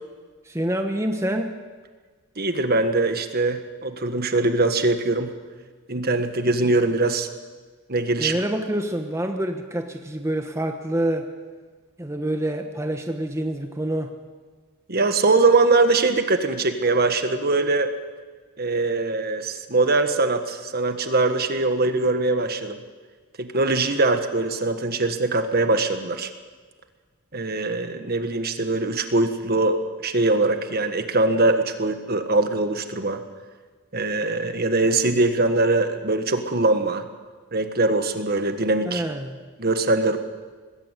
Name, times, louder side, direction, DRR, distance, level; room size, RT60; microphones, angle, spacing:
voice 1, 0.4-1.6 8.2-11.3 12.0-14.1 38.9-39.4, right 1 dB, 15° right, 5 dB, 1.1 m, -27 dB
voice 2, 2.4-5.3 5.9-7.3 7.9-8.4 14.9-17.9 18.6-22.8 23.4-26.3 27.3-33.2 33.9-37.0 37.5-39.0 39.6-40.2, right 2 dB, 45° right, 8 dB, 1.5 m, -22 dB
20.0 x 16.5 x 8.3 m, 1.4 s
head